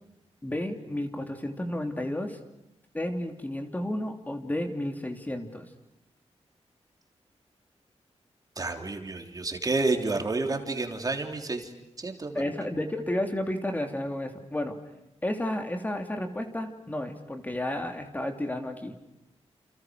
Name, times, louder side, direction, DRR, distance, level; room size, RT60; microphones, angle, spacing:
voice 1, 0.4-2.4 2.9-5.7 12.3-14.8 15.2-18.9, left 1 dB, 15° left, 5 dB, 3.1 m, -32 dB
voice 2, 8.6-11.7 12.0-12.4, right 3 dB, 35° right, 5 dB, 3.4 m, -30 dB
29.5 x 29.0 x 6.4 m, 0.88 s
wide cardioid pair, 135°, 11 cm